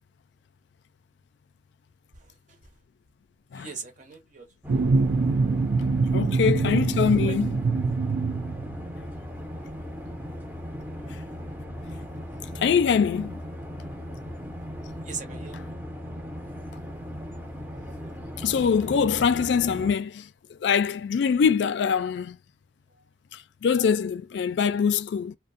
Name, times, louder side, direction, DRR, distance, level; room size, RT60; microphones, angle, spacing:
voice 1, 2.1-2.6 3.5-4.8 5.3-5.6 6.0-6.1 6.5-7.4 11.0-11.1 15.0-15.8, right 5 dB, 45° right, 0.8 m, -42 dB
sound 1, 4.6-19.9, equal, 10° right, 0.5 m, -38 dB
sound 2, 4.7-9.0, right 4 dB, 80° right, 0.4 m, -24 dB
voice 2, 6.1-7.6 12.5-13.4 18.4-20.3 20.6-22.4 23.3-25.4, left 6 dB, 70° left, 0.3 m, -23 dB
2.5 x 2.0 x 2.5 m
head